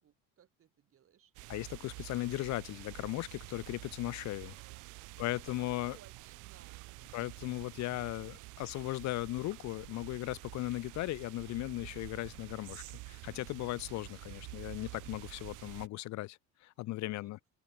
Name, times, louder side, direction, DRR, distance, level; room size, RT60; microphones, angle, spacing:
voice 1, 0.0-1.3 4.5-5.2 5.7-7.0 8.0-8.8 17.1-17.3, right 9 dB, 45° right, 2.7 m, -63 dB
sound 1, 1.3-15.9, right 24 dB, 80° right, 0.4 m, -49 dB
voice 2, 1.5-4.5 5.2-6.0 7.1-17.4, left 18 dB, 65° left, 0.6 m, -37 dB
open air
cardioid pair, 115°, 30 cm